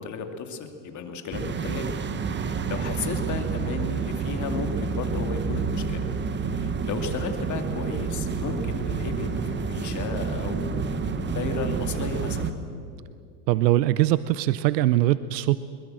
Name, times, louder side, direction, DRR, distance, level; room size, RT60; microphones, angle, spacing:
voice 1, 0.0-1.9 2.5-6.0 6.5-12.5, left 5 dB, 35° left, 6 dB, 2.6 m, -34 dB
sound 1, 1.3-12.5, right 5 dB, 20° right, 1.3 m, -29 dB
voice 2, 13.5-15.6, right 15 dB, 85° right, 16 dB, 0.8 m, -21 dB
22.0 x 21.0 x 7.6 m, 2.4 s
supercardioid pair, 120°, 48 cm